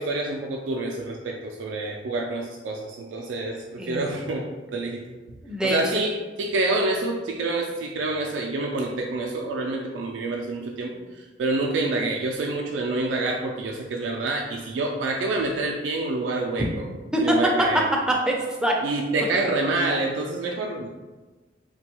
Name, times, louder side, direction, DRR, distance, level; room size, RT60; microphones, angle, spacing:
voice 1, 0.0-5.0 5.6-16.8 17.2-17.8 18.8-20.9, right 2 dB, 85° right, 0 dB, 0.3 m, -27 dB
voice 2, 5.4-6.0 16.6-16.7 17.1-17.7 18.3-18.8, equal, 5° right, -1 dB, 0.4 m, -24 dB
3.0 x 2.2 x 2.9 m, 1.2 s
head